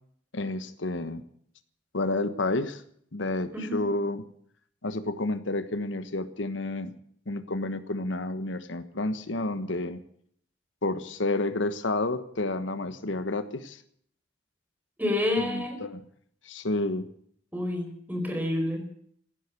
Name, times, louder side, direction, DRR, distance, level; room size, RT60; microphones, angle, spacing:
voice 1, 0.3-1.2 1.9-2.8 3.1-4.2 4.8-6.9 7.3-10.0 10.8-13.8 15.4-16.0 16.4-17.1, left 2 dB, 85° left, 11 dB, 1.3 m, -30 dB
voice 2, 15.0-15.8 17.5-18.8, left 1 dB, 10° right, 4 dB, 4.5 m, -28 dB
16.0 x 10.5 x 8.4 m, 0.64 s
head